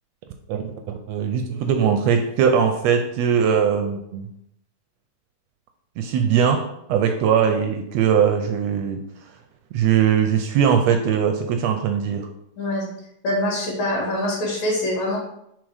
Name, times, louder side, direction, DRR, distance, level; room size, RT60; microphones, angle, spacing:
voice 1, 1.1-4.3 6.0-9.1 9.7-12.3, right 7 dB, 80° right, 6 dB, 1.6 m, -20 dB
voice 2, 13.2-15.2, left 1 dB, 75° left, -4 dB, 3.5 m, -24 dB
6.0 x 3.9 x 4.8 m, 0.78 s
omnidirectional pair, 3.3 m